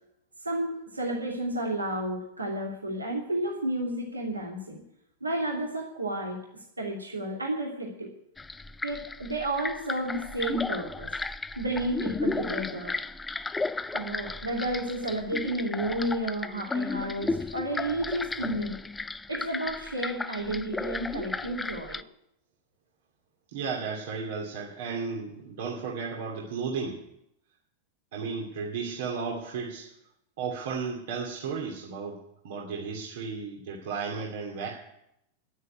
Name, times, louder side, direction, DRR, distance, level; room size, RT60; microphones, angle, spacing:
voice 1, 0.4-4.8 5.2-8.1 8.8-11.1 11.6-12.9 13.9-18.8 19.3-22.0, right 1 dB, 80° right, -1 dB, 2.7 m, -31 dB
sound 1, 8.4-22.0, left 3 dB, 10° left, 0.5 m, -34 dB
voice 2, 23.5-27.0 28.1-29.9 30.4-32.2 32.4-34.7, right 5 dB, 55° right, -2 dB, 2.7 m, -34 dB
10.5 x 9.5 x 9.7 m, 0.80 s
figure-of-eight pair, 90°, 0 cm